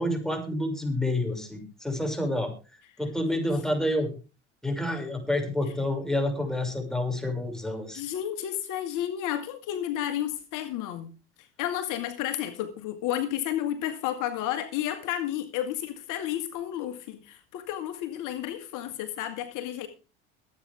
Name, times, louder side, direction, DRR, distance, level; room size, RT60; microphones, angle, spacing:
voice 1, 0.0-2.5 3.0-4.1 4.6-8.0, left 1 dB, ahead, 6.1 m, -28 dB
voice 2, 7.9-11.1 11.6-19.9, left 11 dB, 65° left, 2.0 m, -31 dB
22.5 x 9.1 x 3.5 m
hypercardioid pair, 80°, 34 cm